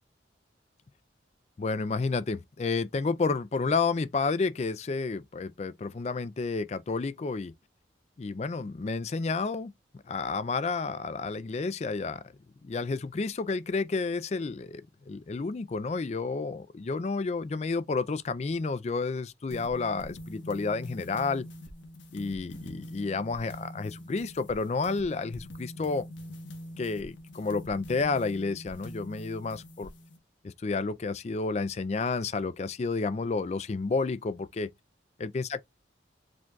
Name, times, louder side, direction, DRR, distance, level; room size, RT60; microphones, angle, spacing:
voice 1, 1.6-7.5 8.2-9.7 10.1-12.2 12.6-21.5 22.1-26.1 26.8-29.9 30.4-34.7 35.2-35.6, left 4 dB, 35° left, 0.3 m, -30 dB
sound 1, 19.5-30.2, equal, 85° left, 1.3 m, -44 dB
5.0 x 2.3 x 3.8 m
head